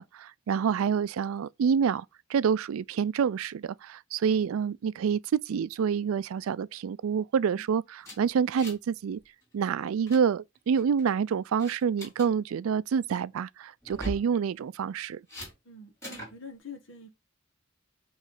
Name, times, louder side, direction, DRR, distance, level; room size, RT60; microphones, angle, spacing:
voice 1, 0.0-5.2 5.5-9.2 9.5-15.2, right 7 dB, 85° right, 0.3 m, -27 dB
sound 1, 8.0-8.9 9.2-9.4 9.8-10.2 10.8-11.1 11.6-12.3 13.8-14.3 15.3-15.5 16.0-16.3, equal, 15° left, 3.2 m, -40 dB
voice 2, 15.6-17.1, left 4 dB, 65° left, 1.5 m, -46 dB
8.0 x 3.2 x 3.9 m
head